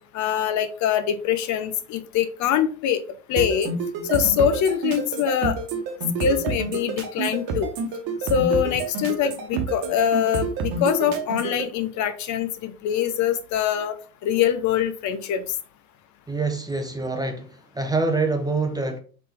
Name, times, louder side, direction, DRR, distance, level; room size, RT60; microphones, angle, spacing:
voice 1, 0.1-3.0 3.3-3.7 4.1-5.6 6.2-7.7 8.3-13.9 14.2-15.4, left 9 dB, 45° left, 0.6 m, -23 dB
sound 1, 3.4-11.6, right 5 dB, 50° right, 1.1 m, -28 dB
voice 2, 16.3-17.5 17.7-19.0, right 3 dB, 10° right, 0.6 m, -25 dB
4.0 x 3.7 x 2.9 m
hypercardioid pair, 80°, 43 cm